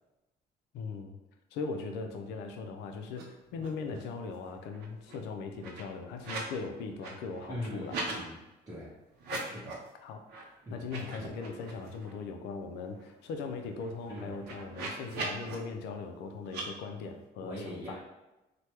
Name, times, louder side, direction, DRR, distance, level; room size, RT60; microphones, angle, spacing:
voice 1, 0.7-1.2 1.5-8.0 9.3-9.5 10.0-18.0, left 4 dB, 80° left, 5 dB, 0.4 m, -39 dB
sound 1, 3.1-3.2 3.5-4.2 4.5-6.6 6.9-8.2 9.1-9.9 10.3-10.4 10.8-12.1 12.5-12.6 12.9-15.5 16.4-16.6, right 3 dB, 85° right, 0.7 m, -41 dB
voice 2, 7.5-8.4 8.7-8.9 9.4-9.7 10.6-10.9 14.1-14.4 17.4-18.0, equal, 20° right, -7 dB, 0.6 m, -41 dB
3.2 x 2.2 x 2.9 m, 1.0 s
cardioid pair, 110°, 17 cm